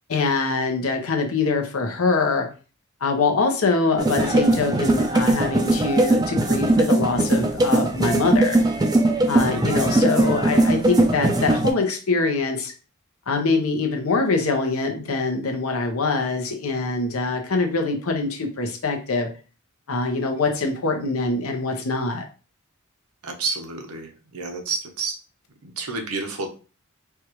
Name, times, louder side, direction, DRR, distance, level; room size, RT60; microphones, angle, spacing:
voice 1, 0.1-2.5 3.0-8.6 9.3-12.7 13.3-19.3 19.9-22.2, left 3 dB, 75° left, 3 dB, 0.8 m, -24 dB
sound 1, 4.0-11.7, right 2 dB, 20° right, 0.4 m, -20 dB
voice 2, 23.2-25.1 25.6-26.5, right 4 dB, 90° right, 4 dB, 0.8 m, -30 dB
4.5 x 2.4 x 3.0 m, 0.36 s
head